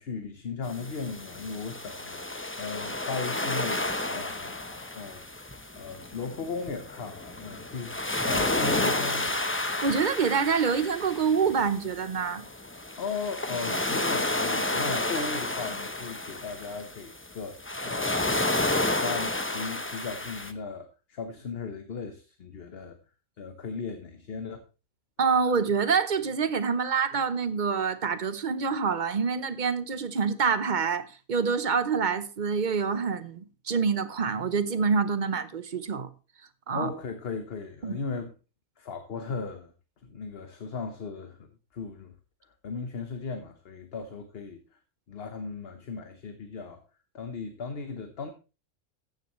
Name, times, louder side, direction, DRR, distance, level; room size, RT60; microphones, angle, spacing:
voice 1, 0.0-5.2 5.7-8.0 8.2-9.3 13.0-23.0 23.4-24.6 36.7-38.3 38.8-39.7 40.0-41.5 41.7-42.1 42.4-44.8 45.1-46.8 47.1-48.3, left 4 dB, 45° left, 1.2 m, -37 dB
sound 1, 0.7-20.5, left 2 dB, 15° left, 0.5 m, -31 dB
voice 2, 9.8-12.5 25.2-36.1 36.7-36.9 37.8-38.0, right 5 dB, 40° right, 0.8 m, -26 dB
14.5 x 9.4 x 3.1 m
omnidirectional pair, 1.5 m